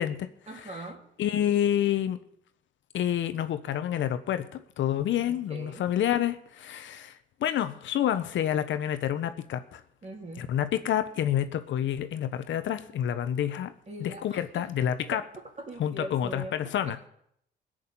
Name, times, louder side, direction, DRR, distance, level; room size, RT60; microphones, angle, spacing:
voice 1, 0.5-1.0 5.5-5.8 10.0-10.5 13.9-14.6 15.1-15.2 15.6-16.5 16.9-17.1, right 1 dB, 35° right, 1 dB, 3.8 m, -41 dB
voice 2, 1.2-2.2 2.9-9.8 10.4-13.7 14.0-15.2 15.8-17.0, left 10 dB, 70° left, 11 dB, 1.0 m, -28 dB
17.0 x 6.5 x 8.9 m, 0.71 s
cardioid pair, 90°, 20 cm